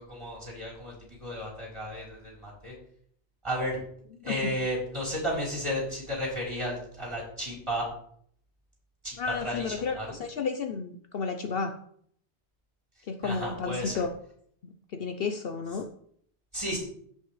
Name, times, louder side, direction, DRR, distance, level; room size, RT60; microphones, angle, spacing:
voice 1, 0.0-2.7 3.4-3.8 4.2-7.9 9.0-10.2 13.2-14.0 16.5-16.8, equal, 25° right, -4 dB, 3.9 m, -33 dB
voice 2, 9.2-11.8 13.1-14.1 14.6-15.9, left 5 dB, 60° left, 6 dB, 0.9 m, -32 dB
16.5 x 5.7 x 3.2 m, 0.64 s
omnidirectional pair, 1.2 m